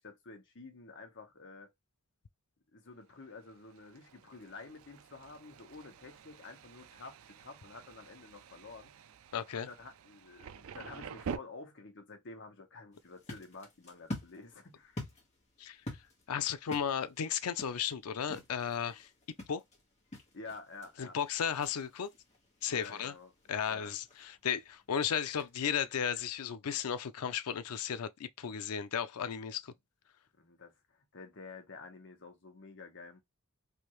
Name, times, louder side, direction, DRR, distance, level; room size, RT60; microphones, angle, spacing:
voice 1, 0.0-1.7 2.7-8.9 9.5-15.0 20.3-21.2 22.7-23.3 23.7-23.9 30.4-33.2, left 3 dB, 55° left, 1.1 m, -50 dB
Thunder, 3.2-11.4, right 6 dB, 70° right, 0.4 m, -48 dB
voice 2, 9.3-9.7 15.6-15.8 16.3-19.1 19.5-19.6 21.0-22.1 22.6-23.1 23.5-29.7, left 8 dB, 90° left, 0.5 m, -34 dB
sound 1, 12.9-26.5, left 1 dB, 30° left, 1.3 m, -49 dB
3.4 x 2.6 x 3.0 m
head